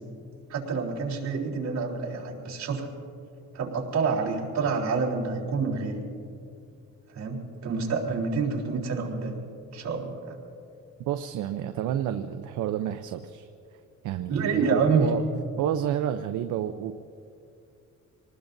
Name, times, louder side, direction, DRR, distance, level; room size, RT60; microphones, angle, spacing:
voice 1, 0.5-2.9 3.5-6.0 7.1-9.4 9.7-10.4 14.3-15.2, right 4 dB, 65° right, -2 dB, 3.7 m, -27 dB
voice 2, 11.1-13.5 14.0-15.2 15.6-16.9, right 10 dB, 80° right, 8 dB, 0.7 m, -30 dB
27.0 x 19.5 x 2.7 m, 2.5 s
cardioid pair, 90°, 30 cm